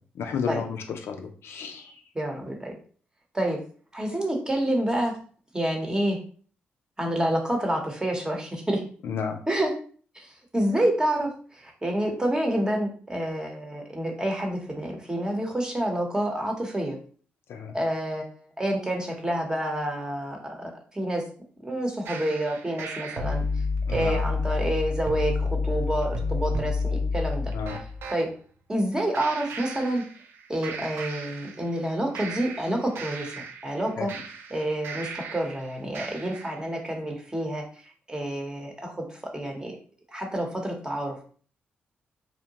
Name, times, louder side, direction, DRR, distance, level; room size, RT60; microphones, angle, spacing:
voice 1, 0.2-1.9 9.0-9.4 17.5-17.7 23.9-24.2 27.5-27.8 34.0-34.1, left 6 dB, 75° left, 4 dB, 0.4 m, -32 dB
voice 2, 2.1-2.7 3.3-3.6 3.9-5.2 5.5-6.2 7.0-8.8 9.5-9.7 10.1-17.0 17.7-21.2 21.6-23.4 23.9-27.5 27.8-27.9 28.1-28.3 28.7-30.0 30.5-33.3 33.6-34.1 34.5-37.6 38.1-39.8 40.1-41.3, right 1 dB, 15° right, 1 dB, 0.9 m, -28 dB
sound 1, 22.1-28.2 29.1-30.4 30.6-31.8 32.1-35.6 35.9-36.6, left 3 dB, 75° right, 0.4 m, -31 dB
2.7 x 2.1 x 2.9 m, 0.44 s
cardioid pair, 65°, 4 cm